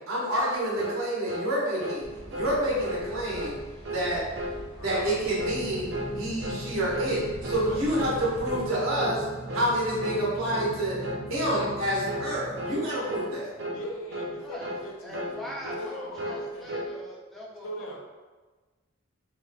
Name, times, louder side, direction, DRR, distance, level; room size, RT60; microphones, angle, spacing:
voice 1, 0.1-3.6 3.9-4.2 4.8-9.2 9.5-10.9 11.3-13.5, right 1 dB, 90° right, -6 dB, 1.2 m, -28 dB
sound 1, 0.8-1.0 1.3-1.5 1.8-2.0 2.3-2.5 2.8-3.1 3.3-3.6 3.8-4.1 4.3-4.6 4.9-5.1 5.4-5.6 5.9-6.1 6.4-6.6 6.9-7.2 7.4-7.7 7.9-8.2 8.4-8.7 9.0-9.2 9.5-9.7 10.0-10.2 10.5-10.7 11.0-11.2 11.5-11.8 12.0-12.3 12.6-12.8 13.1-13.3 13.6-13.8 14.1-14.3 14.6-14.8 15.1-15.4 15.6-15.9 16.2-16.9, equal, 55° right, 0.5 m, -34 dB
sound 2, 2.0-8.7, equal, 35° left, 0.7 m, -44 dB
voice 2, 4.8-5.1 7.5-7.8 13.7-16.7 17.6-18.0, equal, 85° left, 0 dB, 0.6 m, -40 dB
sound 3, 5.0-13.3, right 1 dB, 70° left, 1.2 m, -40 dB
voice 3, 15.0-18.0, left 1 dB, ahead, -5 dB, 0.5 m, -41 dB
3.1 x 3.1 x 2.2 m, 1.3 s
head